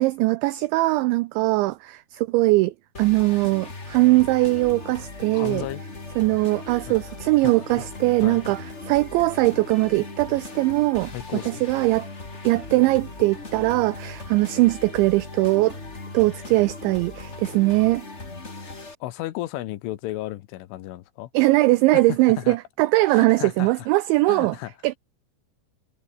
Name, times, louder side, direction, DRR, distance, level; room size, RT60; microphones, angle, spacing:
voice 1, 0.0-5.7 6.2-12.1 12.4-15.8 16.1-18.1 21.3-24.6 24.8-25.0, right 21 dB, 85° right, 2.6 m, -21 dB
sound 1, 2.9-18.9, left 3 dB, 20° left, 2.3 m, -38 dB
voice 2, 5.3-5.8 7.4-7.5 8.2-8.4 11.1-11.6 19.0-21.3 21.9-22.0 22.4-22.6 23.1-23.9 24.3-24.7, left 16 dB, 75° left, 3.5 m, -33 dB
omnidirectional pair, 6.0 m